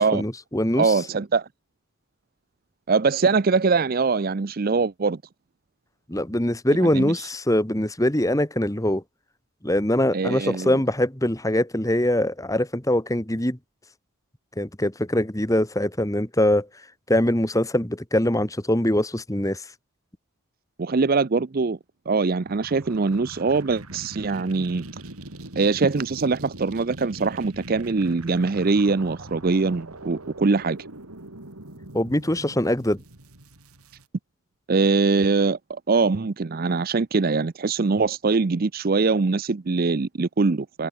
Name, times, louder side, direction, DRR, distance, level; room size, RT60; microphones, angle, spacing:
voice 1, 0.0-0.9 6.1-9.0 9.6-13.6 14.6-16.7 17.1-19.6 31.9-33.0, left 1 dB, 15° left, 1.7 m, -23 dB
voice 2, 0.8-1.5 2.9-5.2 6.8-7.1 10.1-10.8 20.8-21.8 22.1-24.9 25.6-30.8 34.7-40.9, right 4 dB, 40° right, 0.5 m, -22 dB
sound 1, 22.4-34.0, right 1 dB, 90° right, 3.6 m, -42 dB
head